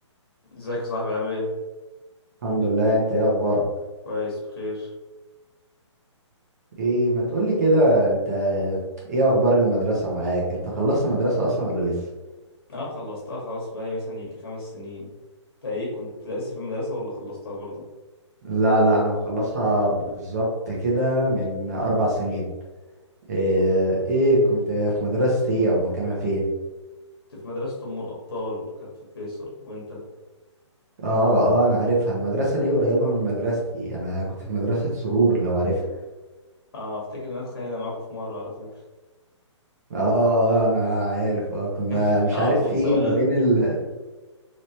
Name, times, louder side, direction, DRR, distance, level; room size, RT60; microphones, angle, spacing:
voice 1, 0.5-1.5 4.0-4.9 12.7-15.1 15.6-17.8 27.3-28.9 29.1-30.0 36.7-38.7 41.9-43.2, left 2 dB, 50° left, -4 dB, 1.1 m, -31 dB
voice 2, 2.4-3.6 6.8-8.8 9.1-12.0 18.4-22.4 23.3-26.4 31.0-35.8 39.9-43.8, right 1 dB, 35° right, -4 dB, 0.9 m, -22 dB
3.1 x 3.1 x 2.8 m, 1.2 s
hypercardioid pair, 175°, 16 cm